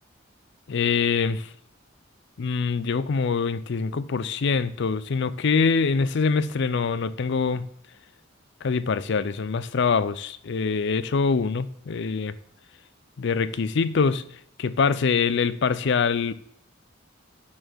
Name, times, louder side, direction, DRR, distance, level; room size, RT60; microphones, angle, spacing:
voice 1, 0.7-1.5 2.4-7.6 8.6-12.3 13.2-14.2 14.6-16.3, left 5 dB, 65° left, 0.5 m, -24 dB
9.4 x 4.3 x 6.2 m
head